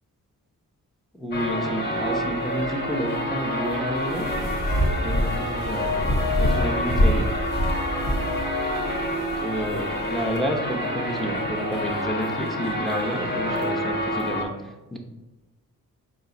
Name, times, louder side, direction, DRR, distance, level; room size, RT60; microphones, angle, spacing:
voice 1, 1.1-4.3 5.0-7.3 9.4-15.0, equal, ahead, 1 dB, 0.7 m, -30 dB
sound 1, 1.3-14.4, left 1 dB, 30° left, 1.2 m, -28 dB
sound 2, 4.0-10.4, equal, 60° left, 1.3 m, -26 dB
4.6 x 2.5 x 3.9 m, 1.1 s
cardioid pair, 60°, 36 cm